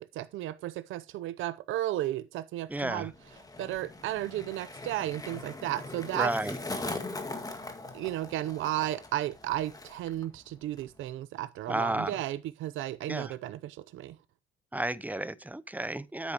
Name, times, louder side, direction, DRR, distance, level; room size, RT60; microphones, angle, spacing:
voice 1, 0.0-3.1 3.6-6.3 7.9-14.2, right 14 dB, 85° right, 0.6 m, -34 dB
Skateboard, 2.7-10.3 10.5-11.0, left 2 dB, 20° left, 1.7 m, -41 dB
voice 2, 2.7-3.1 6.1-6.6 11.7-12.2 13.1-13.3 14.7-16.3, right 1 dB, 10° right, 0.7 m, -32 dB
9.8 x 8.4 x 2.9 m
cardioid pair, 90°, 20 cm